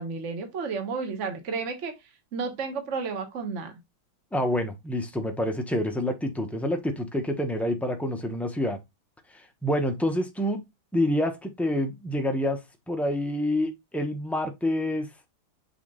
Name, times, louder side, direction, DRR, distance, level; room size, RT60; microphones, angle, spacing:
voice 1, 0.0-1.9 2.3-3.7, right 4 dB, 40° right, 1.4 m, -32 dB
voice 2, 4.3-8.8 9.3-10.6 10.9-12.6 12.9-15.1, left 1 dB, ahead, 0.4 m, -27 dB
6.9 x 3.7 x 3.8 m
omnidirectional pair, 2.3 m